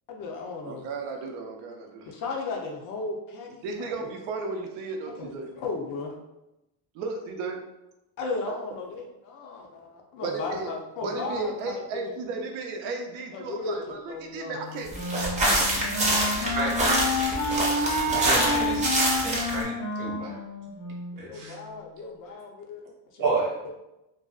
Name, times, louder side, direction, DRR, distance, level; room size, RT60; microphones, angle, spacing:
voice 1, 0.1-0.9 2.1-4.1 5.2-6.1 8.2-12.1 13.3-13.8 14.1-14.6 21.1-23.3 23.6-23.7, left 3 dB, 45° left, 1 dB, 0.4 m, -35 dB
voice 2, 0.6-2.1 3.5-5.5 6.9-7.6 10.2-10.7 11.0-15.7, right 3 dB, 90° right, 3 dB, 0.6 m, -34 dB
Wind instrument woodwind instrument, 14.4-21.6, left 1 dB, 75° left, 0.9 m, -29 dB
sound 1, 14.9-19.6, right 1 dB, 15° right, 0.5 m, -26 dB
voice 3, 16.3-17.3 18.2-18.9 19.2-20.4 21.2-21.6 23.2-23.5, right 3 dB, 45° right, -3 dB, 0.9 m, -30 dB
2.5 x 2.1 x 2.3 m, 0.94 s
cardioid pair, 125°, 46 cm